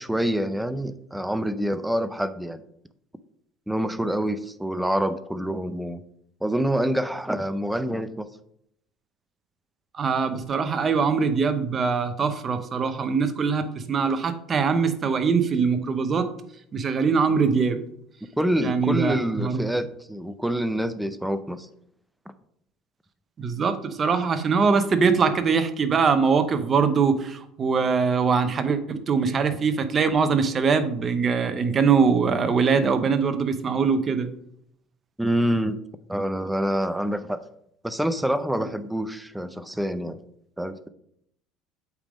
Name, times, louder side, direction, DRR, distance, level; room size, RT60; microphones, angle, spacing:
voice 1, 0.0-2.6 3.7-6.0 6.4-8.3 18.4-21.7 35.2-35.8 36.1-37.4 37.8-40.2 40.6-40.9, equal, 5° right, 12 dB, 0.5 m, -26 dB
voice 2, 9.9-16.3 16.7-17.8 18.6-19.6 23.4-34.3, right 5 dB, 30° right, 9 dB, 0.7 m, -22 dB
8.2 x 3.5 x 5.1 m, 0.72 s
cardioid pair, 125°, 0 cm